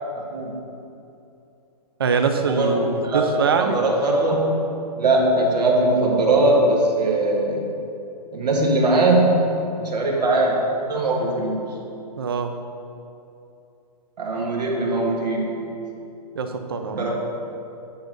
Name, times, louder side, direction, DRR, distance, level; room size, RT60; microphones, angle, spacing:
voice 1, 0.1-0.5 2.5-4.6 5.0-7.7 8.3-9.4 9.8-10.6 10.9-11.6 14.2-15.5 16.9-17.1, right 2 dB, 80° right, -2 dB, 1.6 m, -20 dB
voice 2, 2.0-3.8 12.2-12.5 16.3-17.0, right 5 dB, 35° right, 7 dB, 0.5 m, -23 dB
8.5 x 3.9 x 6.2 m, 2.8 s
hypercardioid pair, 180°, 21 cm